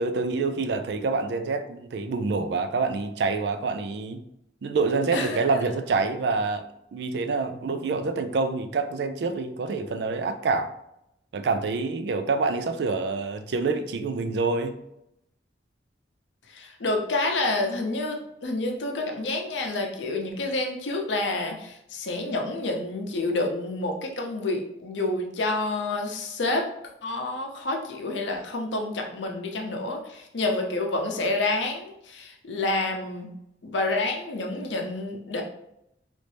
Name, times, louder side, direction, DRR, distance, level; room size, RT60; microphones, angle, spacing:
voice 1, 0.0-4.2 4.6-6.7 6.9-10.7 11.3-14.8, right 4 dB, 70° right, 9 dB, 0.4 m, -27 dB
voice 2, 5.1-5.4 16.5-26.7 27.0-33.3 33.6-35.4, left 2 dB, 85° left, 2 dB, 0.7 m, -28 dB
3.2 x 2.6 x 3.3 m, 0.79 s
head